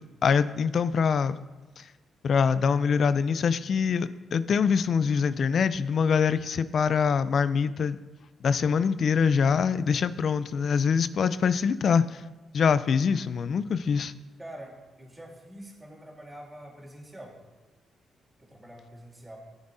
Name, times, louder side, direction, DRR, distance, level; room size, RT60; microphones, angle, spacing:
voice 1, 0.2-1.4 1.8-1.9 2.2-8.0 8.4-12.2 12.5-14.1, left 6 dB, 60° left, 14 dB, 0.4 m, -24 dB
voice 2, 9.3-9.8 14.4-17.4 18.4-19.4, right 1 dB, 15° right, -2 dB, 3.1 m, -46 dB
16.5 x 7.1 x 2.6 m, 1.2 s
supercardioid pair, 60°, 0 cm